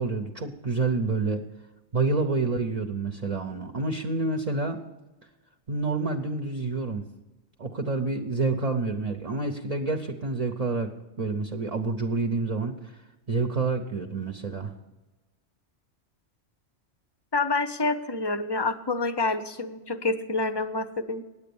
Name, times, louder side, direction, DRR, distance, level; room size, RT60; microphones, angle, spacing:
voice 1, 0.0-1.4 1.9-4.8 5.7-7.0 7.6-10.9 11.2-13.0 13.3-14.7, right 3 dB, 40° right, 3 dB, 0.7 m, -28 dB
voice 2, 17.3-21.2, left 3 dB, 30° left, 11 dB, 0.5 m, -27 dB
9.4 x 8.6 x 7.0 m, 1.1 s
omnidirectional pair, 1.1 m